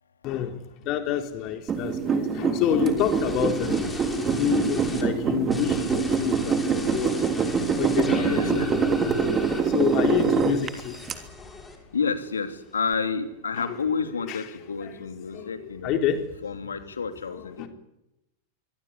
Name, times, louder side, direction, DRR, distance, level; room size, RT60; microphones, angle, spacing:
voice 1, 0.2-7.1 7.6-8.7 9.0-11.0 13.5-13.7 14.3-14.4 15.3-16.2 17.3-17.7, left 9 dB, 40° left, 7 dB, 3.7 m, -28 dB
sound 1, 1.7-11.1, right 5 dB, 25° right, 3.3 m, -25 dB
sound 2, 3.0-5.0 5.5-12.1 12.4-12.9, left 3 dB, 15° left, 6.2 m, -39 dB
voice 2, 8.1-8.7 11.9-16.1 16.4-17.7, left 5 dB, 70° left, 9 dB, 3.0 m, -30 dB
25.0 x 23.5 x 9.8 m, 0.91 s
figure-of-eight pair, 90°, 0 cm